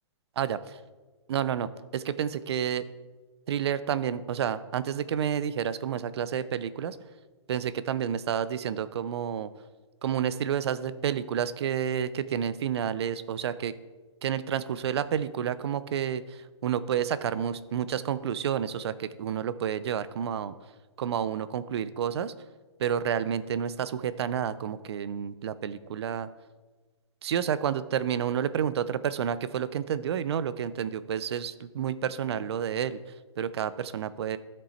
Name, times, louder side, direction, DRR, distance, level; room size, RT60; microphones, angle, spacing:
voice 1, 1.3-2.8 3.5-7.0 7.5-9.5 10.0-13.7 14.2-20.5 21.0-22.3 22.8-26.3 27.2-33.0 33.4-34.4, right 8 dB, 60° right, 15 dB, 0.5 m, -30 dB
12.5 x 5.3 x 4.2 m, 1.3 s
hypercardioid pair, 160°, 15 cm